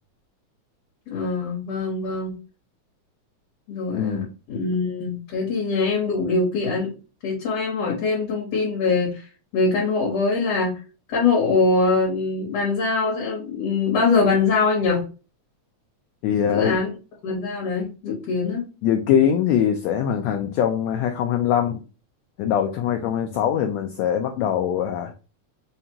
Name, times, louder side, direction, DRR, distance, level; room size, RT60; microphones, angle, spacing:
voice 1, 1.1-2.4 3.7-6.9 7.2-9.3 9.5-10.8 11.1-15.1 16.5-16.9 17.2-18.6, left 4 dB, 65° left, -3 dB, 2.3 m, -23 dB
voice 2, 3.9-4.3 16.2-16.8 18.8-21.8 22.4-25.1, left 9 dB, 80° left, 5 dB, 1.6 m, -22 dB
5.3 x 2.4 x 2.8 m, 0.32 s
omnidirectional pair, 3.4 m